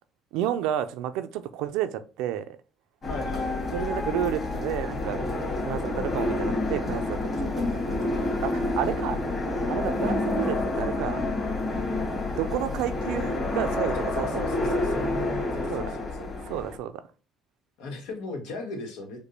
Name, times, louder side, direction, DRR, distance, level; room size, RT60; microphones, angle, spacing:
voice 1, 0.3-2.5 3.7-5.2 5.7-8.0 8.4-9.2 9.7-11.3 12.3-14.4 14.7-14.8 15.7-15.9 16.5-16.9, right 11 dB, 85° right, 0.4 m, -31 dB
sound 1, 3.0-16.8, left 2 dB, 35° left, 1.9 m, -28 dB
voice 2, 3.1-3.5 13.9-15.1 15.5-16.3 17.8-19.2, left 3 dB, 90° left, 1.2 m, -36 dB
5.1 x 2.2 x 3.1 m
cardioid pair, 110°, 0 cm